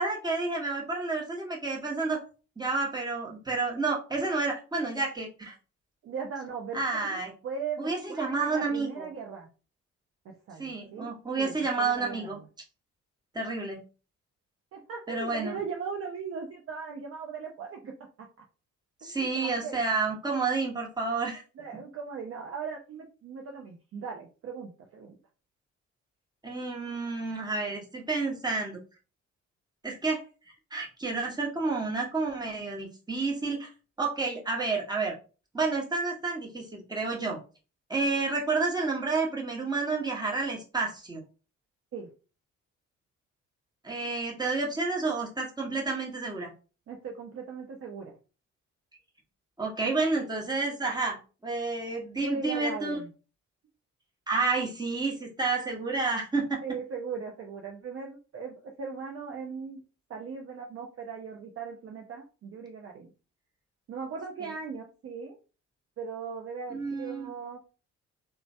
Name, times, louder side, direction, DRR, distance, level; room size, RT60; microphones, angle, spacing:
voice 1, 0.0-2.2 2.6-5.5 6.7-7.3 7.8-9.1 10.6-12.4 13.3-13.8 15.1-15.6 19.0-21.4 26.4-28.8 29.8-30.2 30.7-33.7 34.0-35.1 35.5-37.4 37.9-41.2 43.8-46.5 49.6-53.0 54.3-56.6 64.4-64.5 66.7-67.3, right 3 dB, 10° right, -1 dB, 1.0 m, -30 dB
voice 2, 6.0-7.2 7.4-9.5 10.2-11.1 11.4-12.4 14.7-17.9 19.0-19.8 21.6-25.2 41.9-42.1 46.9-48.2 52.2-53.1 56.6-59.8 60.1-63.1 63.9-65.4 66.0-67.6, right 5 dB, 40° right, 1 dB, 0.6 m, -38 dB
3.0 x 2.1 x 2.6 m, 0.34 s
figure-of-eight pair, 45°, 37 cm